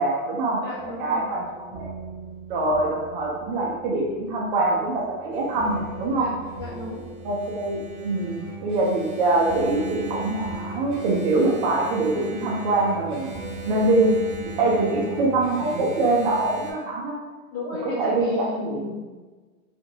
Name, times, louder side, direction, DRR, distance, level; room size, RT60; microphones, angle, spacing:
voice 1, 0.0-0.6 1.0-1.4 1.7-1.9 2.5-6.3 7.2-13.3 13.7-14.2 14.6-17.2 18.0-19.0, right 2 dB, 45° right, -3 dB, 0.6 m, -24 dB
voice 2, 0.6-1.2 6.2-6.3 6.6-7.0 14.6-15.0 17.5-19.0, left 2 dB, 35° left, -8 dB, 1.0 m, -34 dB
sound 1, 0.7-16.2, right 3 dB, 5° left, 0.4 m, -42 dB
Engine, 5.3-16.7, right 1 dB, 85° right, 0.8 m, -38 dB
2.8 x 2.5 x 2.6 m, 1.3 s
supercardioid pair, 150°, 42 cm